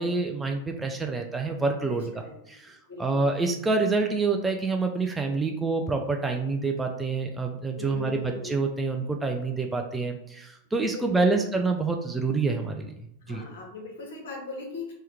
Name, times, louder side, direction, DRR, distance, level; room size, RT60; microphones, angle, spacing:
voice 1, 0.0-2.1 2.5-12.9 13.3-13.4, right 3 dB, 10° right, 3 dB, 0.3 m, -27 dB
voice 2, 1.8-2.6 2.9-3.4 7.7-8.5 10.9-11.6 13.2-14.9, left 3 dB, 60° left, -1 dB, 1.0 m, -39 dB
2.9 x 2.2 x 3.5 m, 0.76 s
figure-of-eight pair, 90°, 0 cm